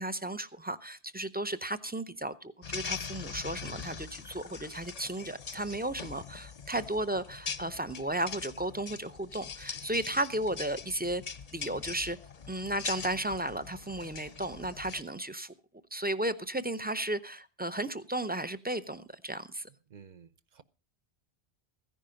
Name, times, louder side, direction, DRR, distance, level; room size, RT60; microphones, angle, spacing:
voice 1, 0.0-11.2 11.5-12.2 12.5-15.5 15.9-19.7, right 1 dB, 10° right, 0.5 m, -34 dB
sound 1, 2.6-15.0, left 6 dB, 40° left, 0.7 m, -42 dB
voice 2, 19.9-20.6, right 7 dB, 50° right, 0.8 m, -53 dB
15.5 x 10.0 x 5.1 m
omnidirectional pair, 1.1 m